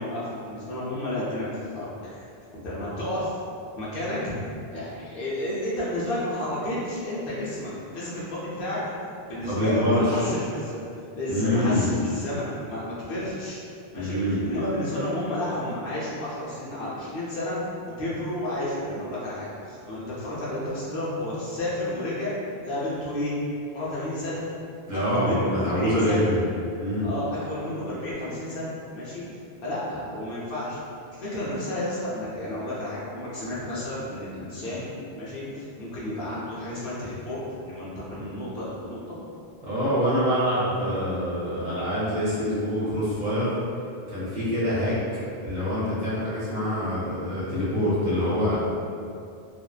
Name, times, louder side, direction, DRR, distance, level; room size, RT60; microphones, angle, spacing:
voice 1, 0.0-1.5 1.7-2.3 2.6-3.4 3.8-4.3 4.7-8.8 9.3-10.8 11.1-13.6 13.9-14.2 14.4-22.4 22.6-23.3 23.7-24.4 24.9-26.3 27.0-29.2 29.6-30.8 31.2-39.2, left 1 dB, 65° left, -8 dB, 0.8 m, -31 dB
voice 2, 9.4-10.3 11.3-11.9 13.9-14.4 24.9-26.4 26.8-27.1 39.6-43.5 44.1-45.0 45.4-48.6, equal, 50° right, -10 dB, 0.8 m, -25 dB
2.6 x 2.1 x 2.3 m, 2.5 s
omnidirectional pair, 1.0 m